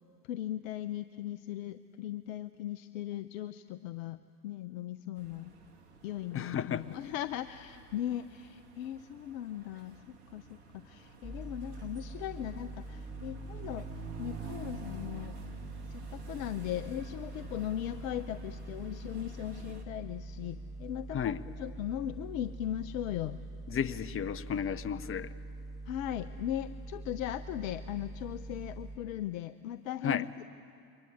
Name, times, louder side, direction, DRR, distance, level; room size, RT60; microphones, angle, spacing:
voice 1, 0.2-5.5 6.0-10.0 10.3-15.4 15.9-21.2 21.6-23.4 25.9-30.4, left 12 dB, 55° left, 13 dB, 0.9 m, -38 dB
sound 1, 5.2-19.8, right 4 dB, 70° right, 2.8 m, -49 dB
voice 2, 6.3-6.8 21.1-21.4 23.7-25.3 30.0-30.2, left 8 dB, 25° left, 16 dB, 1.0 m, -33 dB
sound 2, 11.2-29.0, right 2 dB, ahead, 1.8 m, -44 dB
28.5 x 24.0 x 8.7 m, 2.5 s
hypercardioid pair, 80°, 47 cm